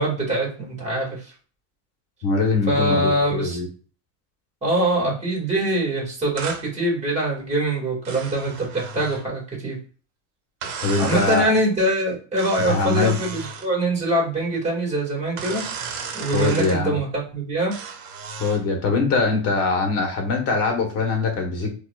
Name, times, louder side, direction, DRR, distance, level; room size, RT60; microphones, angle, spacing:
voice 1, 0.0-1.3 2.7-3.6 4.6-9.8 11.0-15.7 16.1-17.7, right 1 dB, 15° right, -2 dB, 1.8 m, -23 dB
voice 2, 2.2-3.7 10.8-11.5 12.7-13.2 16.3-17.0 18.4-21.7, left 4 dB, 40° left, 2 dB, 1.2 m, -22 dB
sound 1, 6.4-6.6 8.0-9.3 10.6-11.5 12.4-13.7 15.4-16.8 17.7-18.6, right 5 dB, 85° right, 1.0 m, -34 dB
4.4 x 2.5 x 2.4 m, 0.40 s
supercardioid pair, 125°, 39 cm